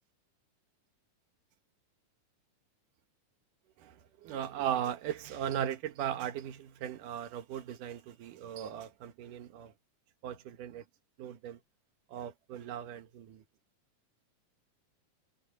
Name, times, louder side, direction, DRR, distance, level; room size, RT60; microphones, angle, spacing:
voice 1, 3.8-9.7 10.2-10.8 11.2-11.6 12.1-13.4, right 10 dB, 80° right, 3.0 m, -38 dB
omnidirectional pair, 3.7 m